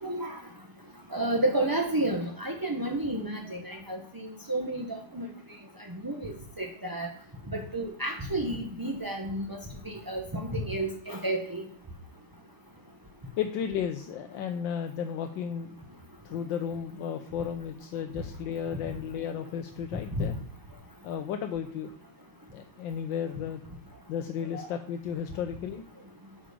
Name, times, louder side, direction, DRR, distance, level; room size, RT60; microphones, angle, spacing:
voice 1, 0.0-0.4 1.1-4.9 5.1-5.3 6.0-7.1 7.5-9.6 9.8-11.7 20.2-20.3 24.5-24.7, right 1 dB, 20° right, 1 dB, 0.6 m, -31 dB
voice 2, 3.4-4.0 13.4-15.7 16.2-20.3 20.7-21.9 22.5-23.6 24.1-25.8, left 8 dB, 70° left, 6 dB, 1.3 m, -34 dB
8.6 x 7.0 x 5.0 m, 0.65 s
omnidirectional pair, 2.4 m